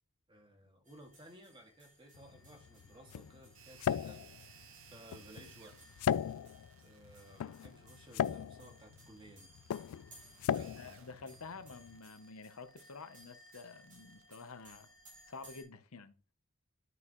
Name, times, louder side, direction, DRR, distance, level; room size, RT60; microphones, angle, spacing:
voice 1, 0.3-4.5 4.9-6.4 6.8-9.5 10.5-11.2, right 1 dB, 25° right, 2.0 m, -57 dB
sound 1, 0.8-15.6, right 1 dB, 40° right, 5.4 m, -62 dB
sound 2, 2.1-12.0, left 9 dB, 90° left, 0.3 m, -38 dB
sound 3, 3.5-14.8, right 9 dB, 65° right, 1.0 m, -62 dB
voice 2, 10.7-14.9 15.3-16.1, left 4 dB, 70° left, 0.8 m, -49 dB
11.0 x 6.2 x 3.0 m
head